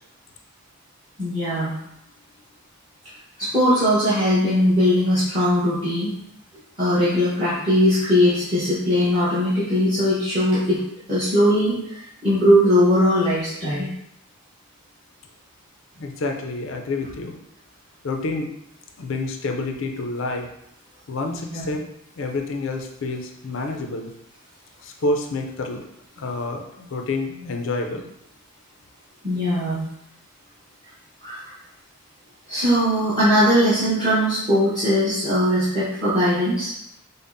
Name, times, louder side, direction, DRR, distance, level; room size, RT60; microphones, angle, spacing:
voice 1, 1.2-1.8 3.4-6.1 6.8-10.8 11.1-13.9 21.5-21.7 29.2-29.8 31.2-31.5 32.5-36.7, equal, 25° right, -12 dB, 1.0 m, -20 dB
voice 2, 16.0-17.4 18.0-18.5 19.0-20.5 21.1-21.8 22.2-24.1 24.8-25.9 26.2-28.1, left 2 dB, 65° left, 3 dB, 0.5 m, -28 dB
5.2 x 2.1 x 2.6 m, 0.78 s
head